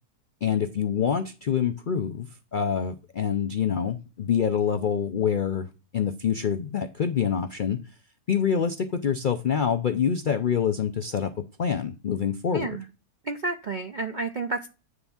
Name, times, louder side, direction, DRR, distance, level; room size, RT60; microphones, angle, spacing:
voice 1, 0.4-5.7 5.9-7.8 8.3-11.3 11.6-12.8, left 7 dB, 75° left, 8 dB, 0.4 m, -26 dB
voice 2, 13.3-14.7, right 3 dB, 65° right, 7 dB, 0.4 m, -30 dB
9.5 x 3.5 x 7.0 m, 0.32 s
omnidirectional pair, 1.7 m